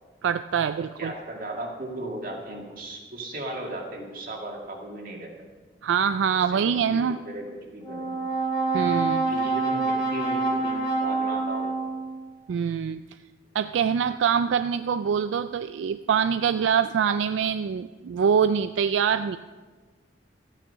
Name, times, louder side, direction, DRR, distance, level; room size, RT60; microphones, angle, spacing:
voice 1, 0.2-1.1 5.8-7.2 8.7-9.2 12.5-13.0 13.5-19.4, right 7 dB, 80° right, 12 dB, 0.3 m, -24 dB
voice 2, 1.0-5.3 6.4-8.1 9.3-11.8, right 1 dB, 50° right, 1 dB, 2.0 m, -36 dB
Brass instrument, 7.8-12.2, right 3 dB, 30° left, 2.9 m, -26 dB
13.5 x 9.0 x 5.6 m, 1.4 s
head